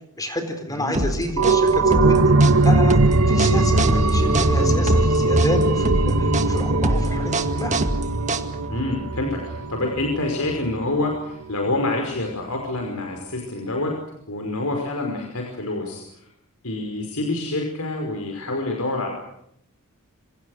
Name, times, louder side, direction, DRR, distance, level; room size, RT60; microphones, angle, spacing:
voice 1, 0.2-2.3 2.6-3.0 3.3-7.7, left 1 dB, 15° left, 6 dB, 4.1 m, -29 dB
voice 2, 0.7-1.2 4.6-4.9 8.7-13.9 14.3-16.3 16.6-19.2, left 2 dB, 75° left, 2 dB, 5.4 m, -27 dB
sound 1, 0.9-8.8, right 2 dB, 35° right, 1.9 m, -25 dB
sound 2, 1.0-10.0 10.4-10.5, equal, ahead, 3.6 m, -28 dB
sound 3, 1.4-10.7 11.1-11.2, right 3 dB, 80° right, 1.6 m, -20 dB
27.5 x 26.5 x 6.6 m, 0.73 s
head